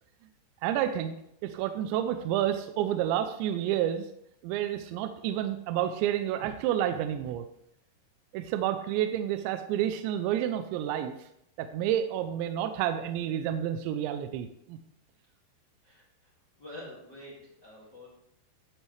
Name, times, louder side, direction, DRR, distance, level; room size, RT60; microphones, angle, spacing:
voice 1, 0.6-1.1 1.4-4.1 4.4-7.4 8.3-11.2 11.6-14.8, right 11 dB, 85° right, 8 dB, 2.8 m, -29 dB
voice 2, 15.8-17.3 17.6-18.1, left 1 dB, 35° left, -6 dB, 1.8 m, -47 dB
12.5 x 7.9 x 3.2 m, 0.75 s
omnidirectional pair, 5.4 m